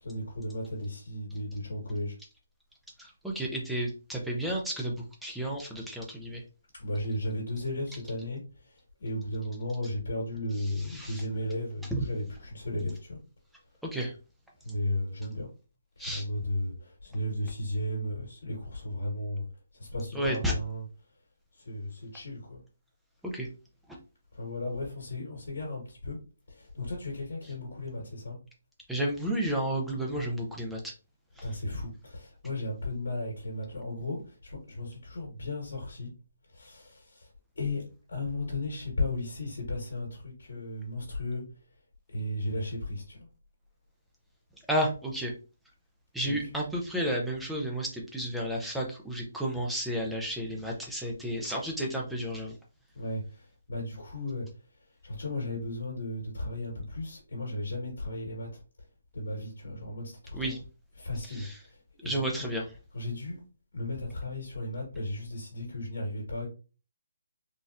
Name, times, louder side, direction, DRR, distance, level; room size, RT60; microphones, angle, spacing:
voice 1, 0.0-2.2 6.8-13.2 14.6-15.5 16.0-19.4 19.7-20.8 21.6-22.6 24.3-26.2 26.5-28.4 31.4-36.1 36.5-37.3 37.5-37.8 38.1-41.4 42.1-43.3 46.2-46.3 52.9-54.5 55.0-58.5 59.1-60.6 61.0-62.5 62.9-63.4 63.7-66.5, left 1 dB, 70° left, -2 dB, 1.5 m, -35 dB
voice 2, 3.0-6.4 10.9-11.2 11.9-12.1 13.8-14.1 16.0-16.2 20.1-20.5 23.2-23.5 28.9-30.9 31.4-31.5 44.7-45.3 46.1-52.5 60.3-60.6 61.3-61.6 62.0-62.6, right 1 dB, ahead, -2 dB, 0.4 m, -32 dB
4.0 x 2.3 x 2.5 m, 0.34 s
hypercardioid pair, 180°, 0 cm